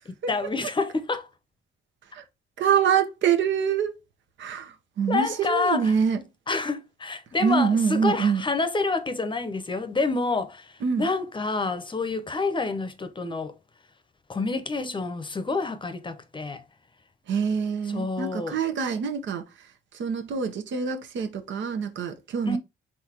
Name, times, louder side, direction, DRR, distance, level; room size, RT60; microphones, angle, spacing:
voice 1, 0.3-1.3 5.1-6.0 6.5-13.5 14.3-16.6 17.9-18.6 22.5-22.6, left 3 dB, 25° left, 0.8 m, -28 dB
voice 2, 2.6-4.0 4.4-6.2 7.4-8.4 10.8-11.1 17.3-19.4 19.9-22.6, right 7 dB, 70° right, 1.1 m, -25 dB
4.1 x 3.9 x 2.8 m
cardioid pair, 90°, 20 cm